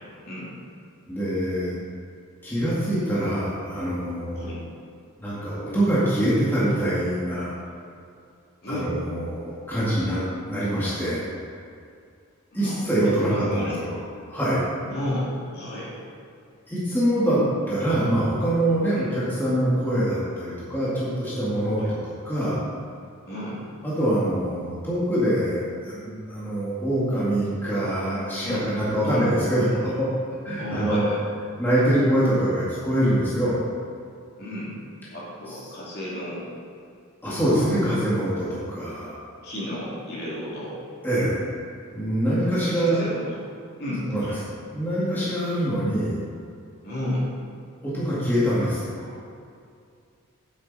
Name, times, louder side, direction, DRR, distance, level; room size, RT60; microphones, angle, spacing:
voice 1, 1.1-1.8 2.4-4.5 5.2-7.6 8.7-10.2 10.5-11.2 12.5-14.0 14.3-14.6 16.7-17.4 17.7-22.6 23.8-30.1 30.4-31.0 31.6-33.6 35.5-35.6 37.2-39.1 41.0-41.4 41.9-43.0 44.1-44.3 44.7-46.2 47.8-49.1, right 1 dB, 10° left, -10 dB, 1.9 m, -24 dB
voice 2, 8.6-8.9 12.5-12.8 13.2-13.8 14.8-15.9 18.9-19.1 21.7-21.9 23.3-23.6 28.4-28.6 29.0-29.2 30.6-31.2 34.4-34.7 35.1-36.4 37.3-37.8 39.4-40.8 42.6-43.4 43.8-44.4 46.8-47.3, left 1 dB, 45° left, -7 dB, 2.6 m, -32 dB
9.6 x 8.1 x 4.1 m, 2.4 s
head